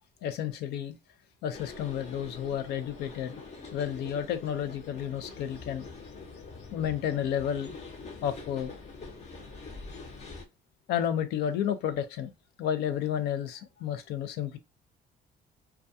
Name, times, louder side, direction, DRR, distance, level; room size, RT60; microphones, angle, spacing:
voice 1, 0.2-0.9 1.4-3.3 3.7-5.9 6.7-7.8 8.2-8.7 10.9-12.3 12.6-14.6, left 9 dB, 80° left, 0.5 m, -31 dB
sound 1, 1.5-10.4, left 4 dB, 40° left, 0.8 m, -45 dB
2.3 x 2.3 x 2.6 m
cardioid pair, 110°, 17 cm